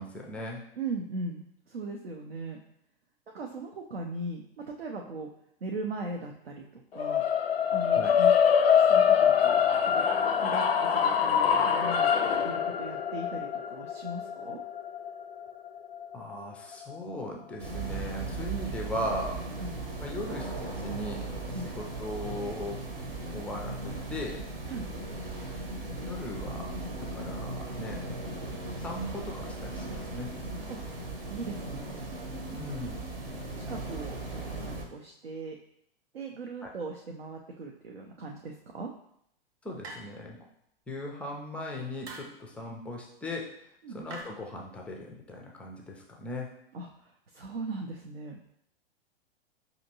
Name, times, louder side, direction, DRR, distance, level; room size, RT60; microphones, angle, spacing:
voice 1, 0.0-0.6 8.0-8.1 16.1-19.4 20.0-22.8 23.3-24.4 26.0-28.0 28.8-30.3 32.5-33.0 36.6-36.7 39.6-40.4 40.9-43.5 43.9-46.5, left 1 dB, 5° left, -1 dB, 0.3 m, -38 dB
voice 2, 0.8-2.6 3.3-5.3 5.6-7.2 7.7-8.3 8.7-10.0 10.4-14.6 19.6-19.7 21.5-21.7 24.7-24.9 30.7-30.8 31.3-32.0 33.6-35.6 36.1-38.9 43.8-44.0 46.7-48.4, right 2 dB, 85° right, 1 dB, 0.5 m, -39 dB
sound 1, 7.0-17.2, left 7 dB, 80° left, 0.4 m, -25 dB
sound 2, 17.6-34.9, right 2 dB, 70° right, 0.9 m, -37 dB
sound 3, 39.8-40.4 42.0-42.4 44.1-44.2, right 3 dB, 30° right, 0.8 m, -43 dB
5.0 x 2.7 x 2.8 m, 0.73 s
figure-of-eight pair, 105°, 30 cm